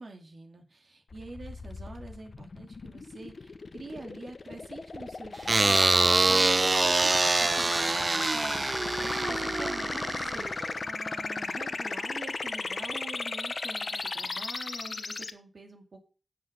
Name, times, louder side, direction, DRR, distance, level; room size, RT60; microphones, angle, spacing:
voice 1, 0.0-6.0 6.2-16.0, right 3 dB, 75° right, 3 dB, 2.4 m, -46 dB
sound 1, 1.1-15.3, left 4 dB, 70° left, 1.0 m, -36 dB
sound 2, 5.5-10.8, right 2 dB, 40° right, 0.5 m, -25 dB
11.0 x 7.9 x 5.1 m, 0.36 s
wide cardioid pair, 100°, 0 cm